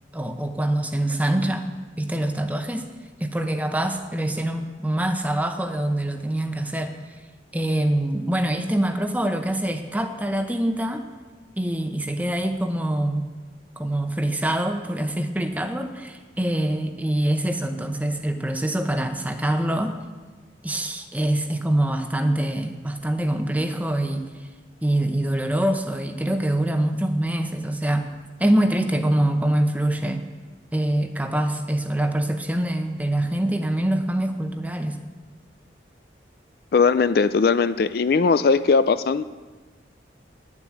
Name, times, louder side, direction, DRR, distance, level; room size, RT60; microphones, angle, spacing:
voice 1, 0.1-1.6 2.0-2.8 3.2-7.0 7.5-11.0 11.6-13.2 13.8-20.0 20.6-24.2 24.8-28.1 28.4-30.2 30.7-35.0, right 1 dB, 10° right, 6 dB, 0.8 m, -24 dB
voice 2, 36.7-39.2, left 4 dB, 55° left, 13 dB, 0.3 m, -19 dB
11.5 x 7.3 x 9.4 m, 1.3 s
head